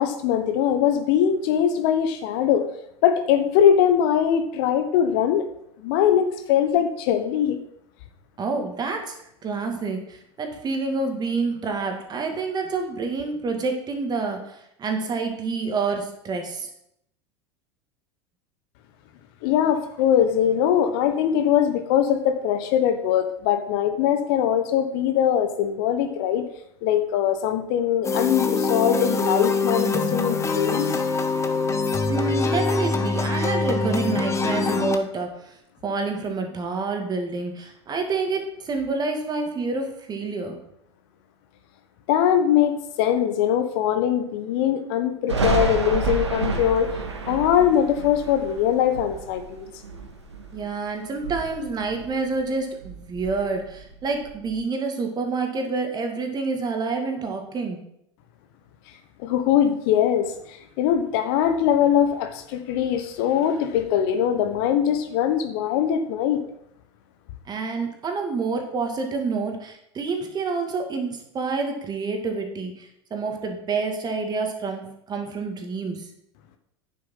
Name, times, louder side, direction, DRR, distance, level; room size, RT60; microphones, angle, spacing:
voice 1, 0.0-2.7 3.0-5.5 5.8-7.6 19.4-26.4 26.8-30.9 42.1-46.9 47.3-49.7 59.2-66.4, left 9 dB, 55° left, 9 dB, 1.2 m, -21 dB
voice 2, 8.4-16.7 32.1-35.6 35.8-40.6 50.5-57.8 67.5-76.1, right 4 dB, 30° right, 4 dB, 2.4 m, -28 dB
sound 1, 28.0-35.0, left 3 dB, 20° left, 1.1 m, -24 dB
Thunder, 45.3-50.7 51.1-52.5 52.8-54.5, right 4 dB, 80° right, 1.7 m, -30 dB
9.6 x 7.3 x 5.6 m, 0.76 s
figure-of-eight pair, 80°, 14 cm